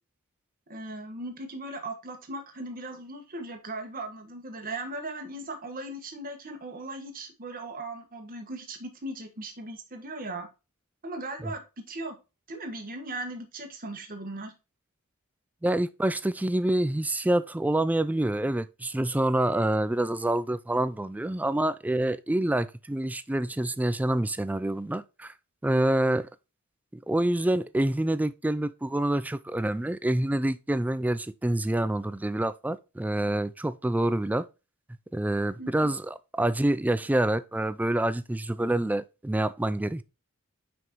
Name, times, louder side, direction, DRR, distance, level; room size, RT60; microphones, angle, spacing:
voice 1, 0.7-10.5 11.0-12.2 12.5-14.5 35.6-35.9, right 2 dB, 40° right, 1.4 m, -38 dB
voice 2, 15.6-25.3 25.6-26.3 26.9-34.5 35.1-40.0, right 1 dB, 5° right, 0.3 m, -27 dB
5.9 x 5.2 x 3.0 m
head